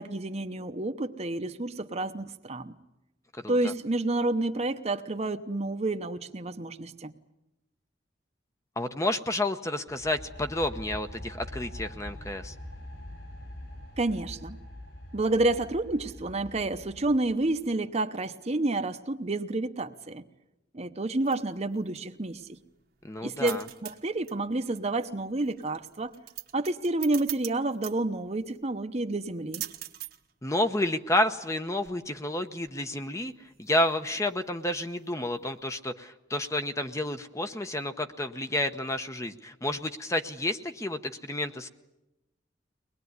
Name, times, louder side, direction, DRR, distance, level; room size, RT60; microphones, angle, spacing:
voice 1, 0.0-2.7 3.5-7.1 14.0-14.6 15.1-20.2 20.7-22.6 23.2-26.1 26.5-29.7, right 2 dB, 35° right, 8 dB, 0.9 m, -29 dB
voice 2, 3.4-3.7 8.8-12.5 23.0-23.6 30.4-41.7, left 1 dB, 15° left, 8 dB, 0.9 m, -30 dB
sound 1, 9.9-17.6, left 1 dB, 65° left, 7.7 m, -44 dB
sound 2, 21.0-35.8, right 14 dB, 55° right, 1.3 m, -45 dB
23.5 x 20.0 x 9.5 m, 0.94 s
head